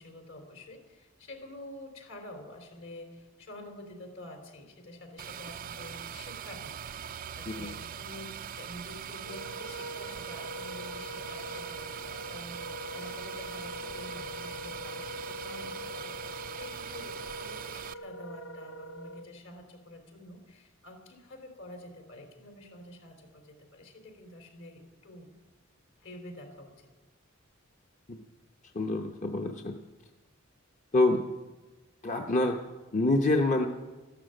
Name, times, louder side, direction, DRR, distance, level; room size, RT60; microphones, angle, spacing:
voice 1, 0.0-6.8 7.1-25.3 26.0-26.9, left 1 dB, 70° left, 4 dB, 3.4 m, -48 dB
sound 1, 5.2-17.9, right 8 dB, 45° right, 0.4 m, -41 dB
Wind instrument woodwind instrument, 9.2-19.3, equal, 90° left, 0.7 m, -43 dB
voice 2, 28.7-29.8 30.9-31.2 32.0-32.6 32.9-33.7, left 2 dB, 35° left, 4 dB, 0.9 m, -26 dB
13.5 x 12.0 x 8.9 m, 1.2 s
head